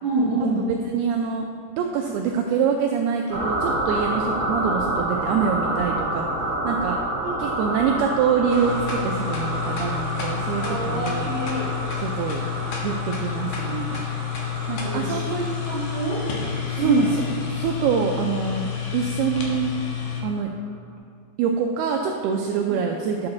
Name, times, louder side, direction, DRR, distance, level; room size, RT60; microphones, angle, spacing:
voice 1, 0.0-0.6 7.2-7.4 10.6-11.7 14.8-16.2 16.7-17.3, right 2 dB, 50° right, -8 dB, 2.5 m, -26 dB
voice 2, 0.6-1.5 1.8-6.3 6.6-7.0 7.4-11.3 12.0-12.4 12.8-14.0 14.7-15.4 16.8-17.2 17.5-19.7 20.2-20.5 21.4-23.3, right 6 dB, 90° right, 2 dB, 2.2 m, -25 dB
sound 1, 3.3-19.6, right 1 dB, 70° right, 0.6 m, -29 dB
sound 2, 8.5-20.2, left 8 dB, 75° left, 1.9 m, -30 dB
10.5 x 7.1 x 3.9 m, 2.2 s
omnidirectional pair, 5.1 m